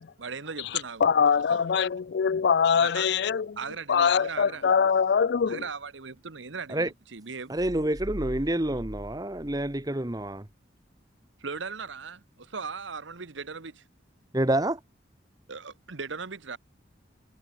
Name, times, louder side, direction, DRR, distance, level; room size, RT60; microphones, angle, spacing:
voice 1, 0.2-1.1 1.5-1.6 2.8-3.1 3.6-4.6 5.5-7.6 11.4-13.8 15.5-16.6, right 5 dB, 80° right, 1.2 m, -38 dB
voice 2, 1.0-3.6 3.9-5.6, left 6 dB, 60° left, 0.4 m, -23 dB
voice 3, 7.5-10.4 14.3-14.8, right 1 dB, 20° right, 1.1 m, -28 dB
sound 1, 7.6-10.4, equal, 55° right, 4.8 m, -42 dB
head